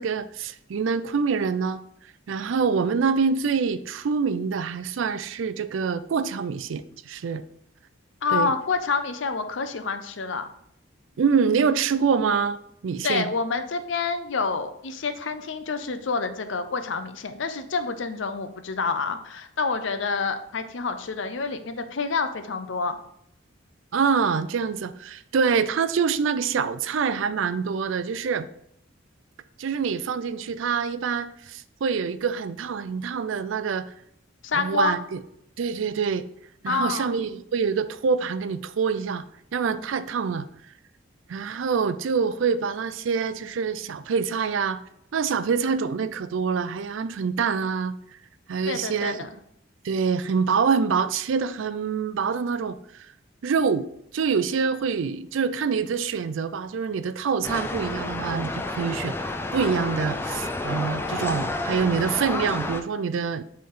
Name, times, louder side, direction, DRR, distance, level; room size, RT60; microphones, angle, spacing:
voice 1, 0.0-1.8 2.3-7.4 8.3-8.5 11.2-13.3 23.9-28.5 29.6-33.9 34.5-35.2 35.6-36.2 36.6-39.2 39.5-40.5 41.3-44.8 45.1-47.9 48.5-49.3 49.8-53.1 53.4-63.4, right 5 dB, 75° right, 13 dB, 0.4 m, -25 dB
voice 2, 8.2-10.5 13.0-23.0 34.4-35.0 36.7-37.1 48.7-49.3, left 4 dB, 70° left, 9 dB, 0.6 m, -28 dB
sound 1, 57.4-62.8, left 2 dB, 10° left, 0.3 m, -30 dB
7.8 x 3.4 x 3.8 m, 0.74 s
head